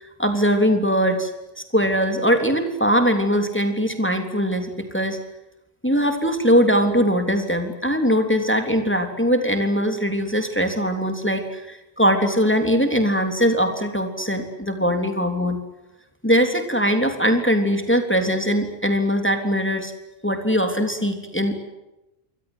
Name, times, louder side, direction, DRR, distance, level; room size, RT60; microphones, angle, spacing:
voice 1, 0.2-1.3 1.7-5.2 5.8-15.6 16.2-19.9 20.2-21.6, equal, 10° left, 5 dB, 3.5 m, -21 dB
28.5 x 25.0 x 8.1 m, 0.97 s
omnidirectional pair, 1.1 m